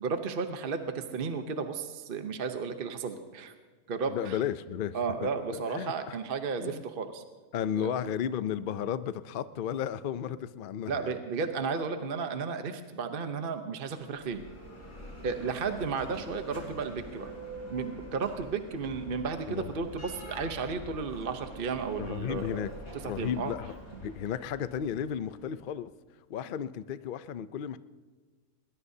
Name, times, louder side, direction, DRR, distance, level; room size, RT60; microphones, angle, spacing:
voice 1, 0.0-3.5 3.9-4.4 4.9-7.2 7.8-7.9 10.9-14.4 15.2-17.3 17.7-22.6 23.2-23.5, right 5 dB, 45° right, 7 dB, 0.9 m, -33 dB
voice 2, 4.1-5.0 5.5-6.2 6.6-6.8 7.5-11.2 19.5-19.7 22.0-22.7 23.0-23.7 24.0-25.9 26.3-27.8, left 9 dB, 80° left, 13 dB, 0.4 m, -33 dB
Bell, 13.9-25.7, equal, 65° left, 5.9 m, -46 dB
21.0 x 20.5 x 2.7 m, 1.4 s
omnidirectional pair, 1.6 m